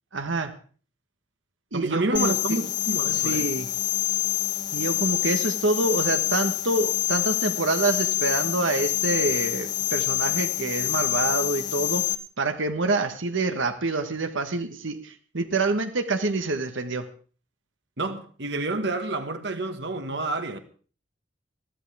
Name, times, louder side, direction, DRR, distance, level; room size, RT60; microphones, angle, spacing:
voice 1, 0.1-0.6 1.7-2.6 3.1-3.7 4.7-12.1 12.4-17.1, right 3 dB, 85° right, 1.4 m, -26 dB
voice 2, 1.7-3.5 18.0-20.6, right 2 dB, 65° right, 1.5 m, -29 dB
sound 1, 2.1-12.1, left 15 dB, 25° left, 1.2 m, -26 dB
21.5 x 14.5 x 3.5 m
head